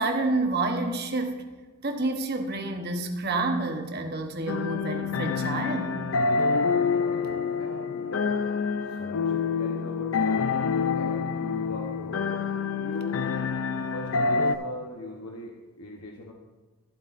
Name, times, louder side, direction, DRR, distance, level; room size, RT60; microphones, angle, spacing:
voice 1, 0.0-1.4 1.8-6.0, right 2 dB, 45° right, 4 dB, 0.9 m, -28 dB
sound 1, 4.5-14.6, left 5 dB, 65° left, 0.4 m, -27 dB
voice 2, 7.6-8.5 9.0-10.4 11.0-12.3 12.8-13.4 13.9-16.3, left 2 dB, 85° left, 0 dB, 0.9 m, -39 dB
14.5 x 8.1 x 2.5 m, 1.2 s
head